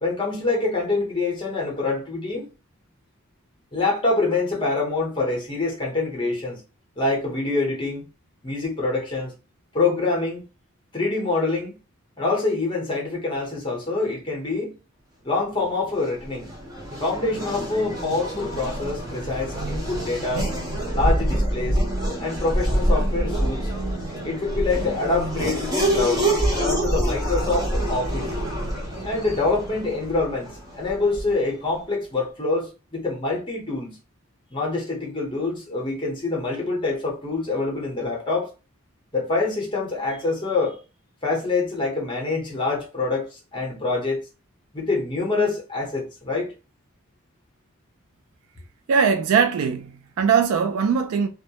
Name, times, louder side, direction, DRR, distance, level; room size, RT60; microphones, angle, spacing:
voice 1, 0.0-2.5 3.7-6.6 7.0-8.0 8.4-9.3 9.7-10.4 10.9-11.7 12.2-14.7 15.2-16.5 16.9-20.5 20.9-21.8 22.2-23.7 24.2-28.3 29.0-30.5 30.8-34.0 34.5-38.5 39.1-40.8 41.2-44.2 44.7-46.5, left 3 dB, 20° left, 0.7 m, -25 dB
Race car auto racing / Accelerating revving vroom, 15.9-31.5, right 1 dB, 15° right, 0.6 m, -26 dB
voice 2, 48.9-51.3, right 6 dB, 80° right, 0.3 m, -20 dB
2.3 x 2.0 x 2.7 m
head